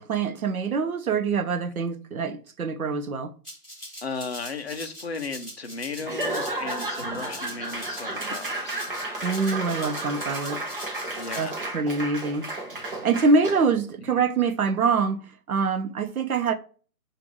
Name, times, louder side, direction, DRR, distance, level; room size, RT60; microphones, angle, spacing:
voice 1, 0.0-3.3 9.2-10.6 11.4-12.5 12.9-15.2 15.5-16.5, right 4 dB, 65° right, 0.8 m, -25 dB
Rattle (instrument), 3.4-11.4, equal, 10° right, 0.9 m, -42 dB
voice 2, 4.0-8.8 11.1-11.7 14.1-14.3, left 4 dB, 45° left, 0.4 m, -35 dB
Laughter / Applause / Crowd, 6.0-13.8, right 2 dB, 35° right, 0.8 m, -33 dB
5.1 x 2.5 x 3.1 m
hypercardioid pair, 165°, 47 cm